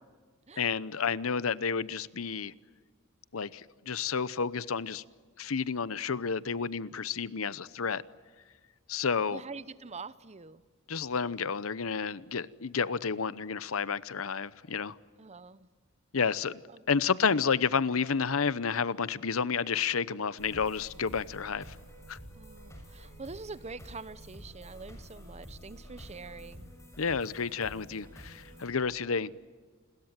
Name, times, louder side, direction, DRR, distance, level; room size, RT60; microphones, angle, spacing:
voice 1, 0.6-2.5 3.3-5.0 5.4-8.0 8.9-9.4 10.9-15.0 16.1-16.6 16.9-21.8 22.1-22.2 27.0-29.3, left 5 dB, 90° left, 0.8 m, -30 dB
voice 2, 9.3-10.6 15.2-15.7 16.7-17.0 22.4-26.7, right 4 dB, 30° right, 0.9 m, -45 dB
sound 1, 20.4-28.6, equal, 15° left, 6.6 m, -49 dB
29.0 x 21.5 x 9.0 m
head